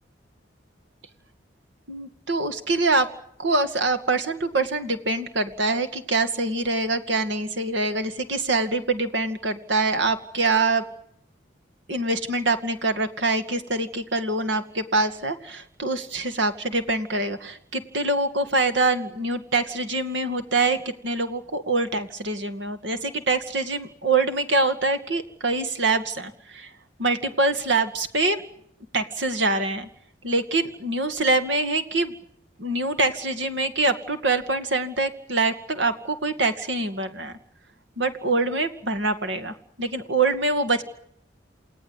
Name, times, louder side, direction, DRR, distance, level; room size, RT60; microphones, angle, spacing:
voice 1, 1.9-3.1 3.4-10.8 11.9-20.8 21.0-26.7 27.0-28.4 28.9-29.9 30.2-32.1 32.6-37.4 38.0-40.8, right 3 dB, 80° right, 9 dB, 2.3 m, -24 dB
29.0 x 18.0 x 8.3 m, 0.70 s
head